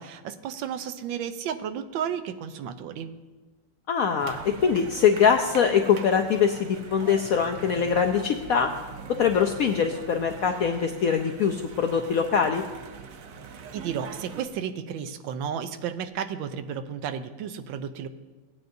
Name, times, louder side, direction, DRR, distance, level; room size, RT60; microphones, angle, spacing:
voice 1, 0.0-3.1 13.7-18.1, right 8 dB, 90° right, 9 dB, 1.4 m, -33 dB
voice 2, 3.9-8.7 9.2-12.6, left 7 dB, 80° left, 5 dB, 0.8 m, -23 dB
sound 1, 4.2-14.5, right 6 dB, 65° right, 0.8 m, -42 dB
17.0 x 9.2 x 2.6 m, 1.3 s
omnidirectional pair, 2.0 m